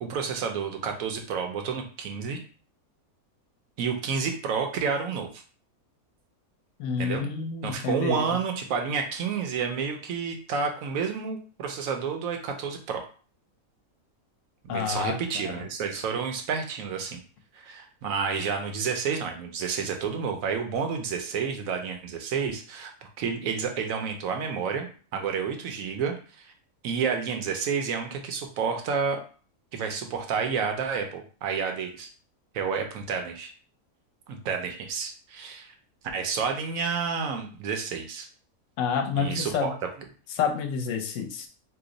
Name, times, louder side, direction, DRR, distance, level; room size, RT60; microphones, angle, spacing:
voice 1, 0.0-2.4 3.8-5.4 7.0-7.3 7.6-13.0 14.6-17.2 17.5-26.5 26.8-29.2 29.7-32.1 32.5-33.5 34.3-35.7 36.1-38.3 39.2-39.7, right 6 dB, 75° right, 4 dB, 1.0 m, -30 dB
voice 2, 6.8-8.3 14.7-15.2 15.4-15.6 38.8-39.7 40.3-41.5, left 6 dB, 65° left, 4 dB, 0.9 m, -29 dB
2.9 x 2.0 x 3.8 m, 0.40 s
omnidirectional pair, 1.5 m